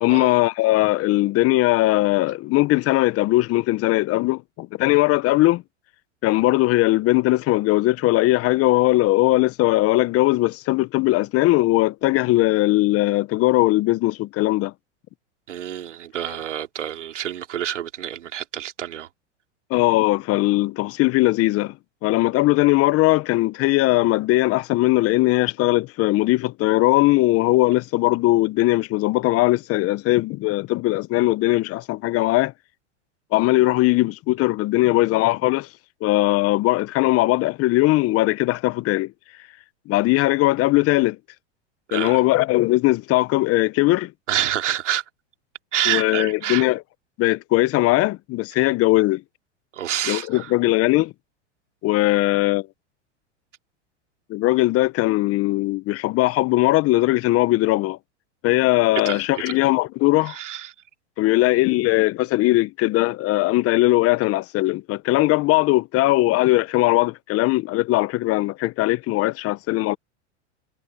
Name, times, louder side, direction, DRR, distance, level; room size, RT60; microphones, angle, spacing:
voice 1, 0.0-5.6 6.2-14.7 19.7-21.8 22.0-32.5 33.3-35.7 36.0-39.1 39.9-41.2 41.9-44.1 45.9-46.8 47.2-49.2 50.1-51.1 51.8-52.7 54.3-58.0 58.4-60.4 61.2-70.0, left 19 dB, 40° left, 1.0 m, -19 dB
voice 2, 15.5-19.1 41.9-42.2 44.3-45.0 45.7-46.6 48.6-48.7 49.7-50.5 59.0-59.2 60.3-60.7, right 11 dB, 90° right, 2.9 m, -27 dB
hypercardioid pair, 105°, 35 cm